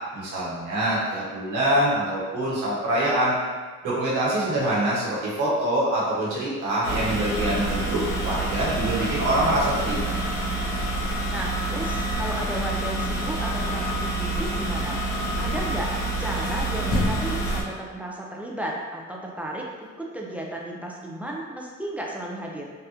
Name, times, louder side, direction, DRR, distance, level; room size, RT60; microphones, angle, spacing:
voice 1, 0.1-3.4 3.8-10.1, right 1 dB, 90° right, -7 dB, 1.0 m, -25 dB
sound 1, 6.8-17.6, right 1 dB, 50° left, 1.2 m, -27 dB
voice 2, 11.3-15.0 15.4-22.7, right 1 dB, 5° right, -2 dB, 0.4 m, -34 dB
3.4 x 2.4 x 2.8 m, 1.4 s
cardioid pair, 90°, 30 cm